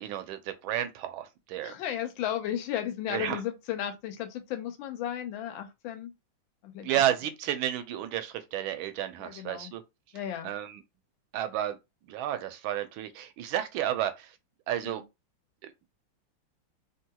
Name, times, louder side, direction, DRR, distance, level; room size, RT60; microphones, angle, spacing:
voice 1, 0.0-1.7 3.1-3.4 6.8-9.8 10.4-10.8 11.3-11.8 12.1-14.3 14.7-15.0 15.6-15.7, right 11 dB, 90° right, 1.4 m, -31 dB
voice 2, 1.6-6.1 6.6-6.9 9.2-9.7 10.1-10.5 14.8-15.0, left 10 dB, 80° left, 1.4 m, -34 dB
3.3 x 2.8 x 2.3 m
omnidirectional pair, 2.2 m